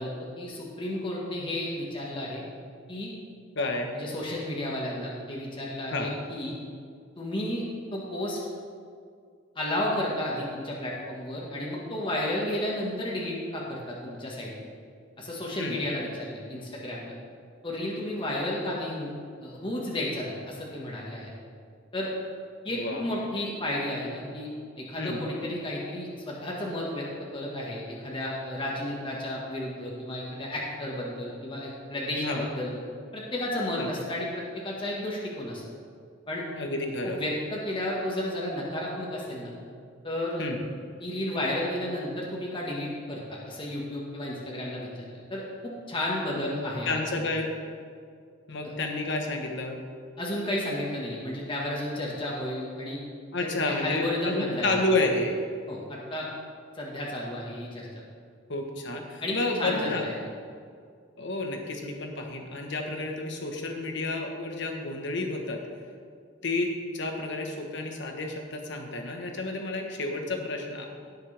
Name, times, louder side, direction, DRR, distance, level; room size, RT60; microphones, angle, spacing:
voice 1, 0.0-2.4 2.9-3.1 3.9-6.5 7.2-7.6 7.9-8.4 9.5-14.7 15.2-17.1 17.6-19.1 19.4-21.3 21.9-22.1 22.6-24.5 24.8-32.7 33.1-35.6 36.3-36.4 37.0-39.5 40.0-40.4 41.0-46.9 48.6-48.7 50.2-53.0 53.4-54.8 55.7-56.3 56.7-58.0 59.2-60.1, left 1 dB, 25° left, -4 dB, 1.6 m, -32 dB
voice 2, 3.5-3.9 5.9-6.1 15.6-15.8 22.7-23.1 25.0-25.2 32.2-32.4 33.8-33.9 36.6-37.2 40.4-40.6 46.3-46.6 46.8-47.5 48.5-49.8 53.3-55.4 58.5-60.0 61.2-65.6 66.4-70.9, left 2 dB, 65° left, 2 dB, 1.3 m, -30 dB
17.5 x 6.5 x 3.5 m, 2.2 s
head